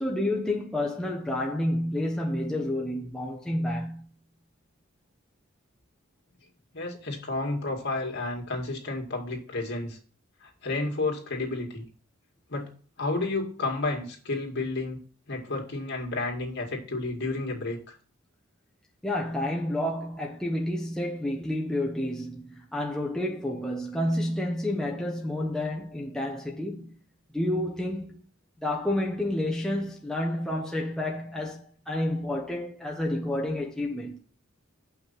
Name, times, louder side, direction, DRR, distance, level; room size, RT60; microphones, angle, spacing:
voice 1, 0.0-4.1 19.0-27.0 27.3-28.2 28.6-34.2, left 1 dB, 5° left, 0.9 m, -30 dB
voice 2, 6.7-10.0 10.4-11.8 12.5-12.7 13.0-15.0 15.3-18.0, left 2 dB, 55° left, 2.3 m, -31 dB
6.5 x 5.8 x 5.8 m
head